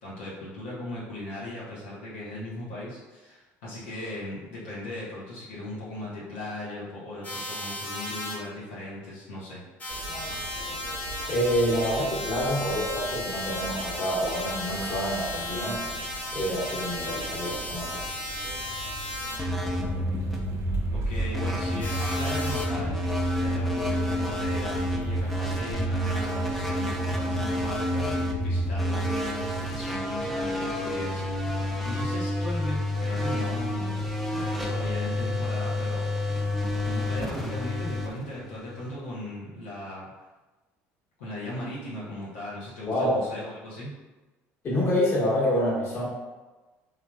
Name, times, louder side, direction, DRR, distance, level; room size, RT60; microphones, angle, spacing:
voice 1, 0.0-9.6 20.9-23.0 23.4-34.0 34.3-36.0 36.9-40.1 41.2-43.9, left 1 dB, 90° left, -8 dB, 0.8 m, -37 dB
sound 1, 7.2-8.3 9.8-19.4 21.8-22.7, left 1 dB, 25° left, 1.0 m, -35 dB
sound 2, 9.9-26.6, right 3 dB, 55° right, 0.5 m, -42 dB
voice 2, 11.3-15.8 16.3-18.0 42.9-43.2 44.6-46.1, equal, 45° left, -6 dB, 1.3 m, -27 dB
sound 3, 19.4-38.9, equal, 5° left, 0.5 m, -29 dB
3.2 x 2.3 x 2.3 m, 1.2 s
supercardioid pair, 80°, 6 cm